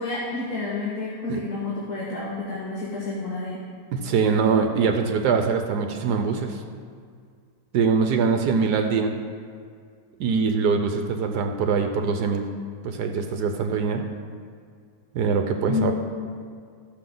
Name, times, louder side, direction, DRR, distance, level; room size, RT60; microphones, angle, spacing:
voice 1, 0.0-3.6 15.6-15.9, left 3 dB, 60° left, -6 dB, 2.1 m, -29 dB
voice 2, 3.9-6.6 7.7-9.2 10.2-12.5 12.8-14.0 15.1-15.9, right 5 dB, 75° right, 6 dB, 1.3 m, -23 dB
14.5 x 6.7 x 3.9 m, 2.1 s
omnidirectional pair, 1.8 m